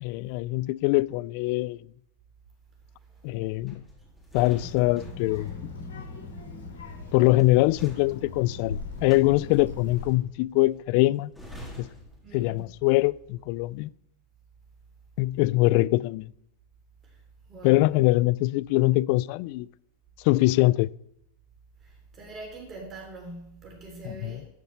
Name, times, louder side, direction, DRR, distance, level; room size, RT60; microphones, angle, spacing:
voice 1, 0.0-1.8 3.2-3.8 4.3-5.5 7.1-11.3 11.8-11.9 12.3-13.9 15.2-16.3 17.6-19.7 20.2-20.9 24.1-24.4, left 19 dB, 55° left, 0.3 m, -23 dB
sound 1, 3.6-13.0 13.2-13.5, equal, ahead, 3.5 m, -48 dB
Child speech kid speaking, 4.5-10.1, left 3 dB, 85° left, 4.2 m, -39 dB
voice 2, 12.2-12.6 17.0-17.1 17.5-17.9 21.8-24.5, right 2 dB, 30° right, 3.1 m, -43 dB
12.5 x 5.3 x 7.1 m
hypercardioid pair, 115°, 0 cm